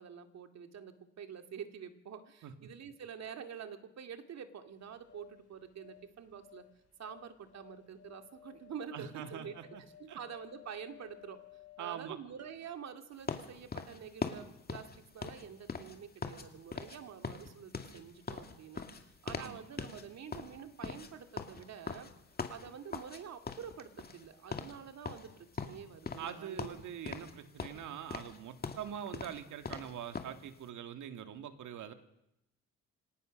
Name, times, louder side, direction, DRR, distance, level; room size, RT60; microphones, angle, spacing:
voice 1, 0.0-6.6 7.0-9.7 10.0-11.4 11.8-22.1 22.5-26.8, right 7 dB, 60° right, 7 dB, 2.3 m, -47 dB
sound 1, 4.7-12.9 13.2-13.4, left 11 dB, 55° left, 7.1 m, -58 dB
voice 2, 8.9-9.8 10.1-10.2 11.8-12.2 19.4-19.6 26.2-31.9, right 9 dB, 75° right, 8 dB, 2.2 m, -43 dB
sound 2, 13.3-16.5 16.7-17.0 17.2-19.5 19.8-20.0 20.3-23.2 23.5-24.3 24.5-24.8 25.0-26.3 26.6-27.3 27.6-30.4, left 4 dB, 30° left, 2.3 m, -41 dB
25.0 x 18.0 x 6.5 m, 0.84 s
cardioid pair, 90°, 30 cm